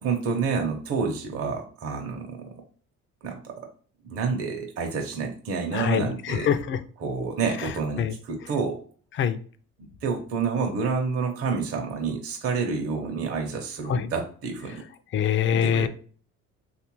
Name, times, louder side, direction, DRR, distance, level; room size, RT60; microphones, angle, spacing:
voice 1, 0.0-2.6 3.2-3.5 4.0-6.5 7.0-8.8 9.8-14.8 15.5-15.9, right 5 dB, 50° right, 2 dB, 0.7 m, -29 dB
voice 2, 5.7-6.8 7.6-7.7 8.0-8.1 9.2-9.4 13.9-14.1 15.1-15.9, left 8 dB, 45° left, 12 dB, 0.4 m, -24 dB
3.3 x 2.4 x 2.9 m, 0.42 s
cardioid pair, 90°, 29 cm